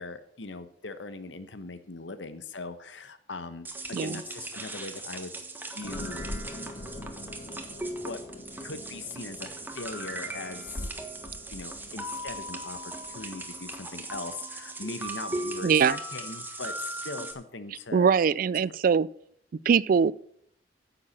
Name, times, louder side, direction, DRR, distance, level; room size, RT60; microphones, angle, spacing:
voice 1, 0.0-6.3 7.8-8.2 8.6-9.5 9.7-10.7 11.5-18.2 18.5-18.8, left 3 dB, 80° left, 1.1 m, -40 dB
sound 1, 3.6-17.3, right 2 dB, 10° right, 1.2 m, -38 dB
sound 2, 5.8-13.8, left 1 dB, 40° left, 0.8 m, -43 dB
voice 2, 15.6-15.9 17.9-19.1 19.7-20.1, right 6 dB, 50° right, 0.3 m, -22 dB
9.6 x 7.1 x 7.2 m
head